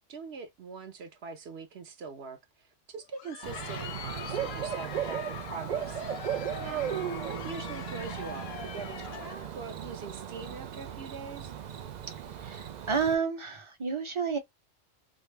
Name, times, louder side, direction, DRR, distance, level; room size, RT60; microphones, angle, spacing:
voice 1, 0.1-6.0 6.6-6.9 7.2-11.5, right 5 dB, 60° right, 0.8 m, -43 dB
Crowd, 3.0-9.6, left 9 dB, 65° left, 0.7 m, -42 dB
Bird / Cricket, 3.4-13.1, right 9 dB, 90° right, 0.3 m, -37 dB
voice 2, 12.4-14.4, right 5 dB, 30° right, 0.6 m, -30 dB
2.7 x 2.6 x 3.3 m
omnidirectional pair, 1.3 m